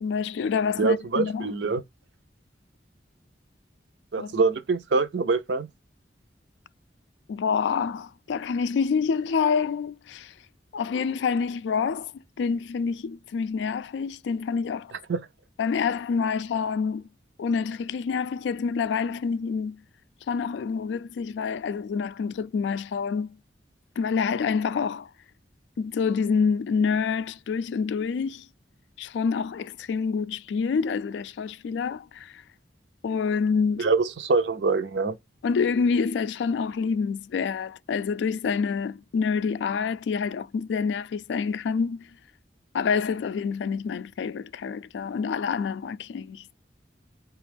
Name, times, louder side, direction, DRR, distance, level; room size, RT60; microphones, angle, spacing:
voice 1, 0.0-1.5 4.2-4.3 7.3-10.3 10.7-14.9 15.6-17.1 17.4-19.8 20.3-23.4 24.0-25.1 25.8-28.5 29.0-32.4 33.0-33.9 35.4-42.2 42.7-46.5, left 5 dB, 85° left, 0.3 m, -27 dB
voice 2, 0.8-1.8 4.1-5.7 15.1-15.2 33.8-35.2, right 4 dB, 85° right, 0.5 m, -24 dB
4.9 x 2.3 x 3.3 m
head